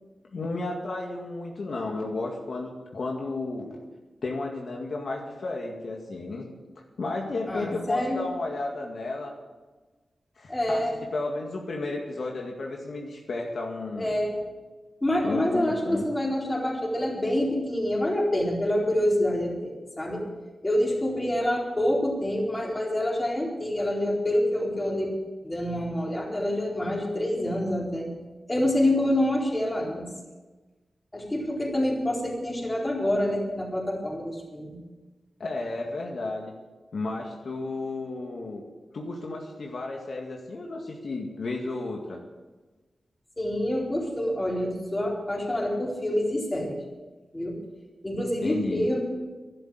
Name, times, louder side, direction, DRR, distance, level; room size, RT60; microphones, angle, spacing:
voice 1, 0.3-3.8 4.2-6.5 7.0-9.3 10.4-10.8 11.1-14.1 15.2-16.1 35.4-36.5 36.9-38.6 38.9-42.2 48.4-48.9, left 2 dB, 65° left, 0 dB, 2.1 m, -33 dB
voice 2, 7.5-8.2 10.5-11.0 14.0-14.4 15.0-20.3 20.6-25.1 25.4-28.1 28.5-30.0 31.1-34.8 43.4-46.8 47.3-47.6 48.0-49.0, left 1 dB, 15° left, -3 dB, 4.3 m, -27 dB
12.5 x 11.5 x 8.0 m, 1.2 s
wide cardioid pair, 95°, 0 cm